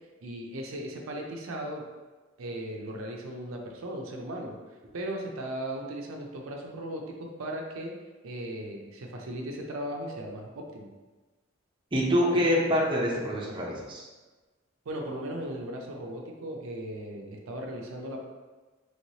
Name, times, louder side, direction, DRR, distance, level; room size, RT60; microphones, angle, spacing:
voice 1, 0.2-1.8 2.4-4.5 4.9-7.9 8.2-10.9 14.9-18.2, right 1 dB, 85° right, 1 dB, 0.5 m, -37 dB
voice 2, 11.9-14.0, equal, 25° right, -4 dB, 0.6 m, -25 dB
3.1 x 3.1 x 2.8 m, 1.3 s
head